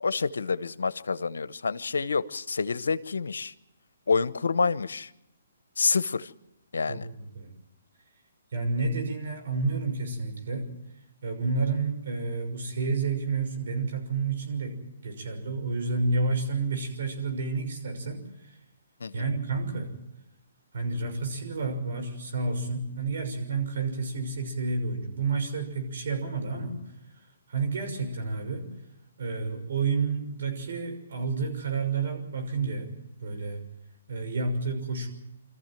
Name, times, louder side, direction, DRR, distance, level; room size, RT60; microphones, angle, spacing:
voice 1, 0.0-3.5 4.1-5.1 5.8-6.3 6.7-7.1 19.0-19.2, left 4 dB, 80° left, 15 dB, 1.0 m, -28 dB
voice 2, 6.9-7.5 8.5-10.7 11.2-14.8 15.0-18.2 19.1-19.9 20.7-26.8 27.5-28.7 29.2-32.9 33.2-33.6 34.1-35.1, right 4 dB, 65° right, 5 dB, 6.3 m, -30 dB
25.5 x 14.5 x 9.2 m, 0.86 s
hypercardioid pair, 145°, 0 cm